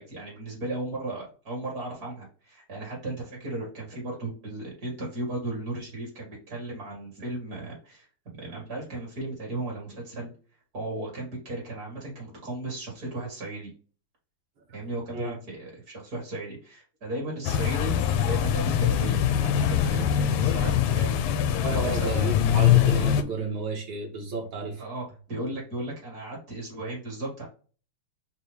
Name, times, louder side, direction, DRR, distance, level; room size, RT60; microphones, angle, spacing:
voice 1, 0.0-8.1 8.4-10.3 10.7-13.7 14.7-22.3 24.8-27.5, right 2 dB, 45° right, -3 dB, 2.3 m, -35 dB
sound 1, 17.4-23.2, left 9 dB, 85° left, 1.5 m, -23 dB
voice 2, 21.6-24.8, right 3 dB, 65° right, -1 dB, 2.2 m, -32 dB
5.6 x 2.3 x 3.2 m, 0.38 s
omnidirectional pair, 2.4 m